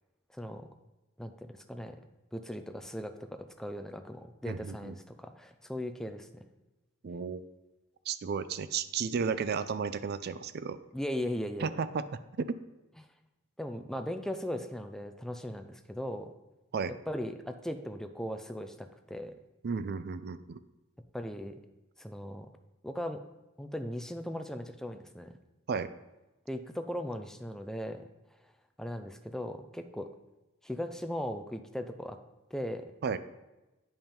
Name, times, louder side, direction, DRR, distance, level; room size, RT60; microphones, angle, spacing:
voice 1, 0.3-0.7 1.2-2.0 2.3-6.4 10.9-11.7 13.6-16.3 17.1-19.3 21.1-21.6 22.0-22.5 22.8-23.2 23.6-25.3 26.5-28.0 28.8-30.1 30.6-32.2 32.5-32.9, equal, ahead, 7 dB, 0.5 m, -38 dB
voice 2, 4.5-4.9 7.0-7.5 8.1-10.8 11.6-12.6 16.7-16.9 19.6-20.6 25.7-25.9 33.0-33.2, right 5 dB, 50° right, 14 dB, 0.4 m, -33 dB
9.2 x 5.5 x 4.4 m, 1.0 s
head